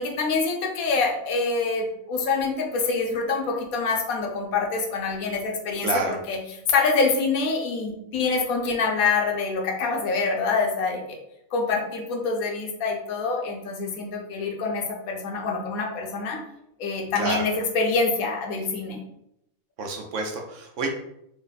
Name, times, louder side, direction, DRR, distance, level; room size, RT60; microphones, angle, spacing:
voice 1, 0.0-6.4 6.7-11.2 11.5-16.4 16.8-19.0, left 4 dB, 85° left, 1 dB, 1.1 m, -26 dB
voice 2, 5.8-6.2 17.2-17.5 19.8-20.9, right 3 dB, 70° right, 3 dB, 0.9 m, -28 dB
3.1 x 2.1 x 3.9 m, 0.79 s
omnidirectional pair, 1.4 m